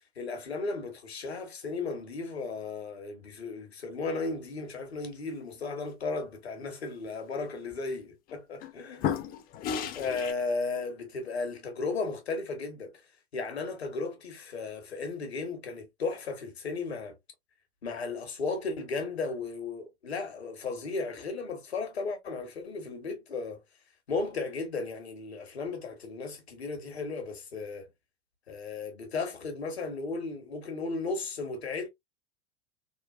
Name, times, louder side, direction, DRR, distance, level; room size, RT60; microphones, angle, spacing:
voice 1, 0.2-9.0 9.9-12.9 13.3-17.2 17.8-23.6 24.1-27.9 28.5-31.9, left 4 dB, 75° left, 1.2 m, -35 dB
sound 1, 7.4-7.7 8.3-8.7 9.0-10.3, left 8 dB, 30° left, 0.5 m, -33 dB
3.7 x 2.3 x 2.2 m
figure-of-eight pair, 85°, 32 cm